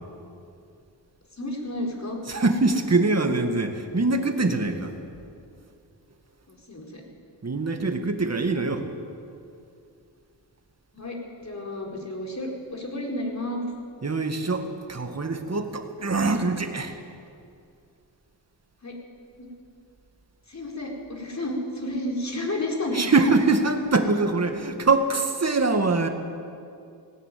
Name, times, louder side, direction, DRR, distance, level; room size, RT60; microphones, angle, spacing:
voice 1, 1.3-2.2 6.5-7.0 10.9-11.2 11.4-13.6 18.8-18.9 19.4-19.5 20.5-23.1, left 1 dB, 40° left, 0 dB, 4.6 m, -31 dB
voice 2, 2.3-4.9 7.4-8.9 14.0-17.0 22.9-26.1, right 3 dB, 35° right, 6 dB, 2.0 m, -23 dB
18.5 x 17.5 x 9.4 m, 2.5 s
wide cardioid pair, 90°, 43 cm